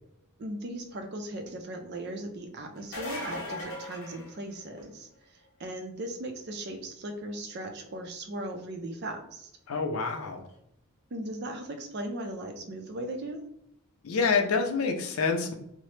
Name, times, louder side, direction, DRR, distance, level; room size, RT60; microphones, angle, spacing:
voice 1, 0.4-5.1 5.6-9.5 11.1-13.4, right 1 dB, 50° right, 5 dB, 0.4 m, -38 dB
sound 1, 2.8-5.0 10.5-10.6 12.4-12.5, left 2 dB, 55° left, 0.9 m, -39 dB
voice 2, 9.7-10.5 14.0-15.5, left 4 dB, 80° left, 5 dB, 0.5 m, -27 dB
2.8 x 2.0 x 3.1 m, 0.77 s
head